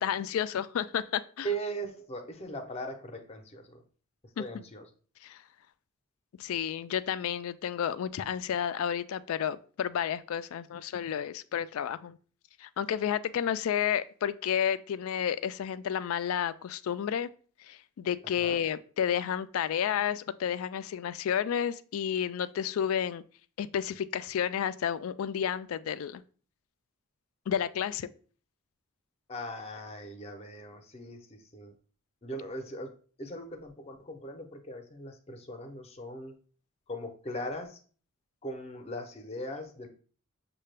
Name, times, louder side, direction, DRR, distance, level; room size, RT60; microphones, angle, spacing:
voice 1, 0.0-1.5 4.4-4.6 5.2-5.4 6.4-12.2 12.6-17.3 17.6-23.2 23.6-26.2 27.5-28.1, left 9 dB, 75° left, 15 dB, 0.3 m, -31 dB
voice 2, 1.4-3.8 4.4-4.8 18.4-18.6 29.3-31.7 32.2-32.9 33.2-36.3 36.9-37.8 38.4-39.9, right 1 dB, 30° left, 6 dB, 0.6 m, -39 dB
6.5 x 2.2 x 3.2 m, 0.42 s
head